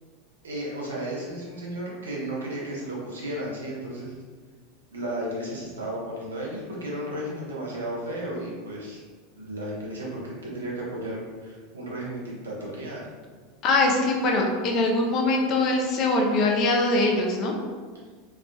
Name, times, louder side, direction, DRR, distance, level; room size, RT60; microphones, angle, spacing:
voice 1, 0.4-4.1 4.9-9.0 9.3-13.1, right 1 dB, 90° right, -4 dB, 0.8 m, -34 dB
voice 2, 13.6-17.5, left 2 dB, 45° left, 1 dB, 0.6 m, -22 dB
3.2 x 2.5 x 2.2 m, 1.5 s
hypercardioid pair, 90°, 0 cm